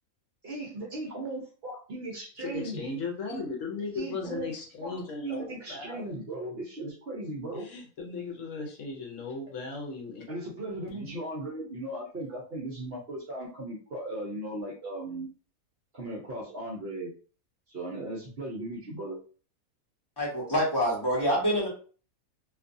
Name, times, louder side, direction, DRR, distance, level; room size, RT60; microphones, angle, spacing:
voice 1, 0.4-2.9 3.9-4.5 4.8-7.7 10.3-15.3 15.9-17.1 17.7-19.2, right 1 dB, 55° right, -3 dB, 0.8 m, -37 dB
voice 2, 2.4-6.1 7.5-10.2 10.9-11.2, left 3 dB, 65° left, 1 dB, 0.9 m, -37 dB
voice 3, 20.2-21.7, equal, 20° left, -4 dB, 0.9 m, -26 dB
2.5 x 2.3 x 2.5 m, 0.39 s
omnidirectional pair, 1.5 m